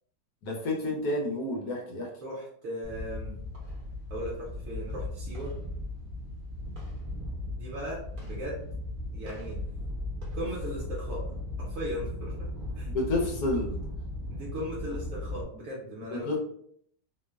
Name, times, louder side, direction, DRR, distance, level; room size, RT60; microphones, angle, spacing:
voice 1, 0.4-2.1 12.9-13.7 16.1-16.4, left 2 dB, 70° left, -1 dB, 1.1 m, -30 dB
voice 2, 2.2-3.3 4.1-5.6 7.5-8.7 9.1-9.6 10.3-11.3 11.6-12.5 12.7-12.9 14.3-16.4, equal, 65° right, -5 dB, 0.8 m, -37 dB
sound 1, 2.8-15.4, left 1 dB, 85° right, 0.4 m, -37 dB
2.9 x 2.0 x 2.2 m, 0.65 s
omnidirectional pair, 1.9 m